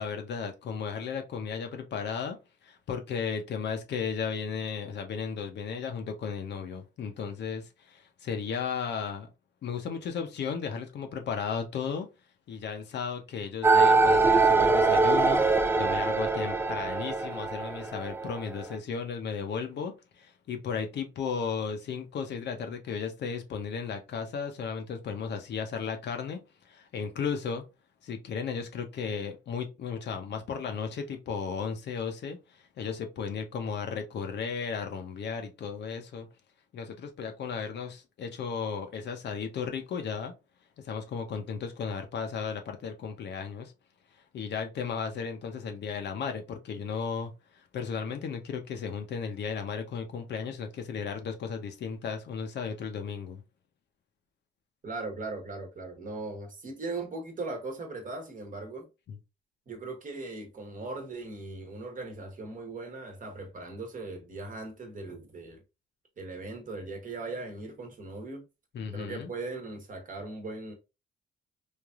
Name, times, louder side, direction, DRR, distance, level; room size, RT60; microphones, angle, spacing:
voice 1, 0.0-2.4 2.6-9.3 9.6-12.1 12.5-27.6 28.0-36.3 36.7-40.3 40.8-43.7 44.3-47.3 47.7-53.4 59.1-59.2 68.7-69.3, left 6 dB, 60° left, 0.7 m, -35 dB
sound 1, 13.6-18.8, right 3 dB, 10° right, 0.3 m, -23 dB
voice 2, 54.8-58.9 59.7-65.6 66.2-68.4 68.9-70.7, right 3 dB, 40° right, 1.1 m, -39 dB
3.2 x 2.5 x 2.4 m
cardioid pair, 90°, 20 cm